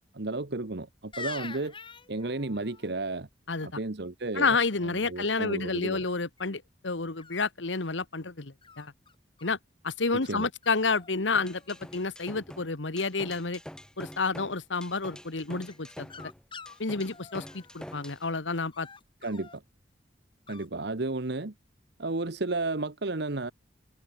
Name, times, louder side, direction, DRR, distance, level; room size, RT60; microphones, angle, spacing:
voice 1, 0.0-1.7 2.1-3.3 3.6-4.5 4.8-6.0 10.3-10.5 19.2-19.6 20.5-21.5 22.0-23.5, right 2 dB, 65° right, 1.2 m, -33 dB
sound 1, 1.1-2.9 6.0-6.4 7.2-8.0 8.6-9.5 10.2-10.4 10.6-11.1 11.4-12.0 15.7-18.2 18.7-19.6 20.5-20.7, left 5 dB, 30° left, 2.5 m, -46 dB
voice 2, 4.3-8.9 9.4-9.6 9.8-13.6 14.0-16.3 16.8-18.9, left 4 dB, 85° left, 1.6 m, -30 dB
sound 2, 11.4-18.2, equal, 5° left, 3.1 m, -46 dB
head